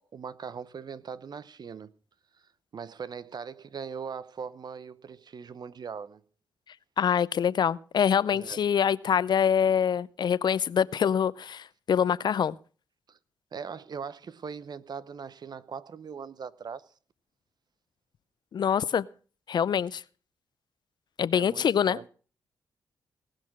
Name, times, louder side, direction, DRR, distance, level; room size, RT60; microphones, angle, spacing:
voice 1, 0.1-1.9 2.7-6.2 8.3-8.6 13.1-13.2 13.5-16.9 21.3-22.1, right 6 dB, 55° right, 0.8 m, -40 dB
voice 2, 7.0-12.6 18.5-19.0 19.5-20.0 21.2-22.1, left 8 dB, 60° left, 0.5 m, -25 dB
19.0 x 6.4 x 6.1 m
hypercardioid pair, 40°, 9 cm